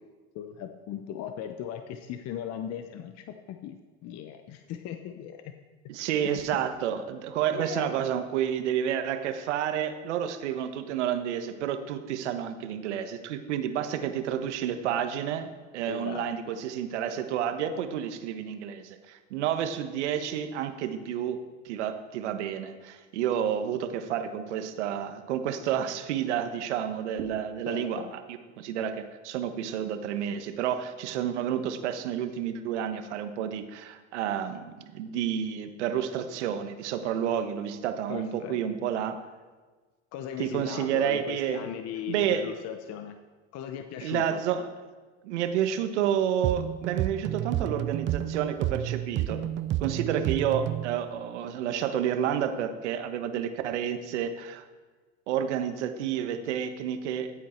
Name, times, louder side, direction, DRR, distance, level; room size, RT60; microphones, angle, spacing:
voice 1, 0.3-5.5 6.2-6.6 7.5-7.9 15.9-16.3 27.7-28.1 38.1-38.6 39.0-39.1 40.1-43.2 43.5-44.4, left 9 dB, 45° left, 7 dB, 0.9 m, -38 dB
voice 2, 5.9-21.4 21.6-39.1 40.4-41.7 42.1-42.5 44.0-44.7 45.2-49.4 49.8-54.6 55.3-57.3, right 9 dB, 80° right, 8 dB, 1.3 m, -30 dB
sound 1, 46.4-51.0, right 12 dB, 35° right, 0.5 m, -30 dB
14.0 x 8.4 x 4.5 m, 1.3 s
hypercardioid pair, 100°, 35 cm